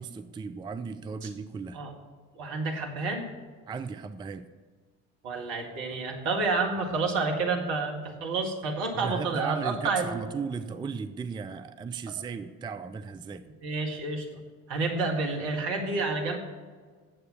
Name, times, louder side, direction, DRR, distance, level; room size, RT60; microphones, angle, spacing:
voice 1, 0.0-1.8 3.7-4.5 8.9-13.5, right 5 dB, 10° right, 11 dB, 0.4 m, -36 dB
voice 2, 2.4-3.3 5.2-10.2 13.6-14.2 14.7-16.4, right 3 dB, 65° right, 1 dB, 2.0 m, -29 dB
9.6 x 7.8 x 7.0 m, 1.5 s
figure-of-eight pair, 50°, 43 cm